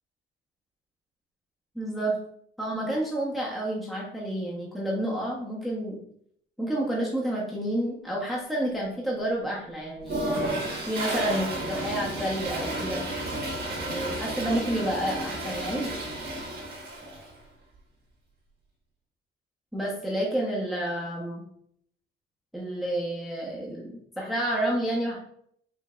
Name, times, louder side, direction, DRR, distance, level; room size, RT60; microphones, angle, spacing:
voice 1, 1.7-2.2 2.6-6.0 6.6-10.4 10.9-13.0 13.8-15.9 19.7-21.4 22.5-25.2, right 1 dB, ahead, -4 dB, 1.1 m, -30 dB
Toilet flush, 10.0-17.3, right 1 dB, 55° right, 1.5 m, -32 dB
5.3 x 3.3 x 2.5 m, 0.67 s
cardioid pair, 90°, 20 cm